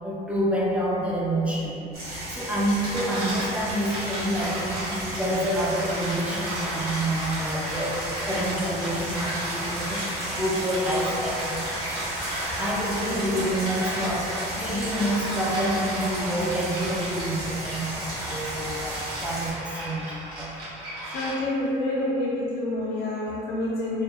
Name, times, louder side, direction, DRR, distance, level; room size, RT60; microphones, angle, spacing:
voice 1, 0.0-1.8 2.3-11.7 12.5-20.6, right 1 dB, 5° right, -5 dB, 0.4 m, -28 dB
sound 1, 1.9-19.5, right 1 dB, 65° right, 1.2 m, -34 dB
sound 2, 2.8-21.7, right 1 dB, 85° right, 0.9 m, -34 dB
voice 2, 21.1-24.0, left 1 dB, 75° left, -6 dB, 0.4 m, -27 dB
2.2 x 2.2 x 2.9 m, 2.7 s
cardioid pair, 110°, 17 cm